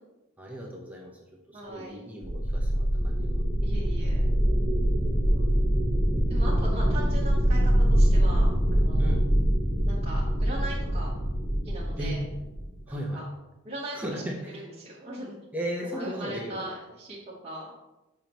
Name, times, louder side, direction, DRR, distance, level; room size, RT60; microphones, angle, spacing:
voice 1, 0.4-1.2 1.5-3.4 9.0-9.2 12.0-12.2 12.9-13.2 13.9-14.7 15.5-16.7, equal, 5° right, -2 dB, 1.0 m, -36 dB
voice 2, 1.5-2.0 3.6-4.3 5.2-5.5 6.3-9.1 9.9-11.1 11.6-12.2 12.9-13.2 13.6-14.2 14.5-15.4 16.0-17.2 17.4-17.7, right 1 dB, 25° right, -7 dB, 1.2 m, -39 dB
sound 1, 2.2-12.8, equal, 20° left, 1.6 m, -24 dB
7.2 x 5.7 x 3.0 m, 1.0 s
head